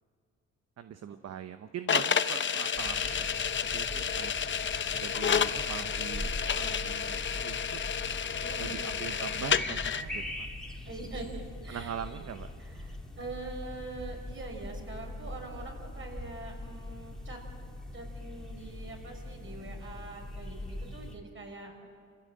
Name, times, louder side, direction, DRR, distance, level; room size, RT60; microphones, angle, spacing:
voice 1, 0.8-3.3 3.7-4.3 4.9-7.8 8.6-10.5 11.7-12.5, right 8 dB, 60° right, 9 dB, 1.0 m, -41 dB
sound 1, 1.9-10.0, left 7 dB, 40° left, 0.8 m, -30 dB
sound 2, 2.7-21.1, left 1 dB, ahead, 3.0 m, -42 dB
voice 2, 8.4-9.0 10.9-12.3 12.6-17.4 17.9-21.9, right 3 dB, 40° right, 1 dB, 6.2 m, -44 dB
28.0 x 16.0 x 7.8 m, 2.3 s
cardioid pair, 90°, 30 cm